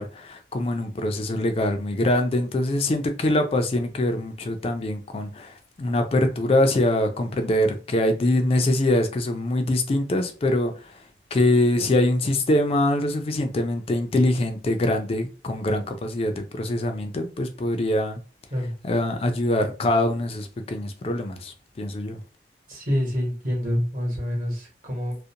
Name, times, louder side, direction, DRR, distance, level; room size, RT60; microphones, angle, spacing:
voice 1, 0.0-11.0 11.3-18.2 18.8-22.2, left 1 dB, 35° left, 0.3 m, -24 dB
voice 2, 22.7-25.2, equal, 50° right, 1.0 m, -27 dB
2.5 x 2.1 x 2.7 m
head